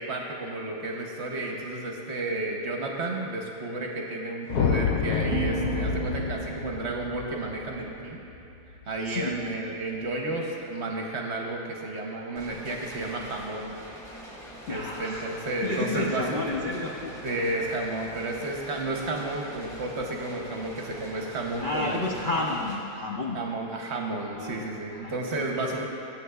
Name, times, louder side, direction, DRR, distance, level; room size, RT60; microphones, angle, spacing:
voice 1, 0.0-8.2 8.9-13.8 14.7-16.4 17.2-22.3 23.3-25.8, right 2 dB, 55° right, 0 dB, 0.9 m, -32 dB
sound 1, 4.5-8.9, left 6 dB, 85° left, 1.1 m, -29 dB
sound 2, 5.3-8.3, right 8 dB, 70° right, 1.0 m, -36 dB
sound 3, 12.4-22.8, equal, ahead, 1.4 m, -44 dB
voice 2, 14.7-17.1 21.6-23.4 24.3-25.8, left 2 dB, 65° left, -1 dB, 0.5 m, -32 dB
16.0 x 7.5 x 2.3 m, 2.9 s
omnidirectional pair, 1.6 m